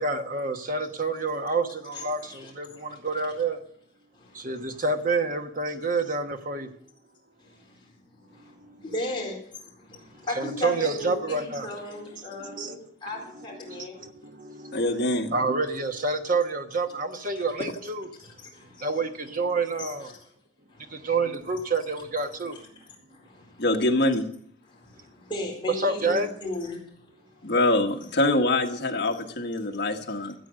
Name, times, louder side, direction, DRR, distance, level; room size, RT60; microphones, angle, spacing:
voice 1, 0.0-3.6 4.3-6.7 8.4-8.8 10.4-11.7 12.4-12.8 13.1-18.1 18.8-20.1 20.9-22.6 25.8-26.3, right 3 dB, 40° right, 1.2 m, -28 dB
voice 2, 1.9-3.4 4.1-4.8 7.4-14.0 17.3-17.5 18.2-18.9 19.8-20.3 20.7-21.1 22.5-23.7 24.6-27.5 29.1-29.2, left 1 dB, 25° left, 4.3 m, -38 dB
voice 3, 14.7-15.3 23.6-24.2 27.4-30.3, left 2 dB, 55° left, 1.6 m, -24 dB
14.5 x 8.2 x 6.4 m
head